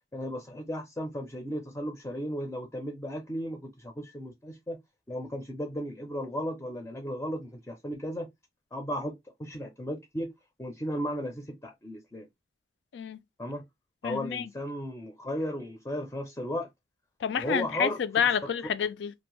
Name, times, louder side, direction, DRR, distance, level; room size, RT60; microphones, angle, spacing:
voice 1, 0.1-4.8 5.1-8.3 8.7-10.3 10.6-12.3 13.4-13.6 14.0-16.7 17.4-18.0, equal, 15° left, 0.4 m, -35 dB
voice 2, 14.0-14.5 17.2-19.1, left 7 dB, 75° left, 0.3 m, -29 dB
2.6 x 2.0 x 3.0 m
head